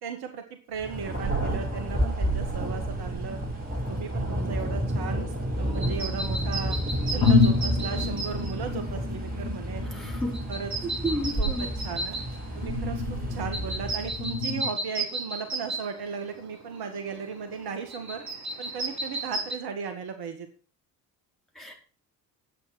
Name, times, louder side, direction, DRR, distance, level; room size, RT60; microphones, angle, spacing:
voice 1, 0.0-3.4 3.9-6.8 7.1-9.9 10.5-10.7 11.4-12.2 12.6-18.2 18.6-20.5, right 6 dB, 50° right, 7 dB, 1.9 m, -36 dB
Thunder, 0.8-14.4, right 1 dB, 20° right, 5.6 m, -31 dB
sound 1, 4.8-6.1 6.7-6.8 7.2-14.7, left 4 dB, 65° left, 2.2 m, -30 dB
sound 2, 5.7-19.6, right 2 dB, 35° right, 3.0 m, -36 dB
voice 2, 9.8-10.5 10.8-11.7 21.5-21.7, equal, ahead, 0 dB, 4.4 m, -32 dB
11.0 x 8.6 x 6.2 m, 0.37 s
figure-of-eight pair, 50°, 49 cm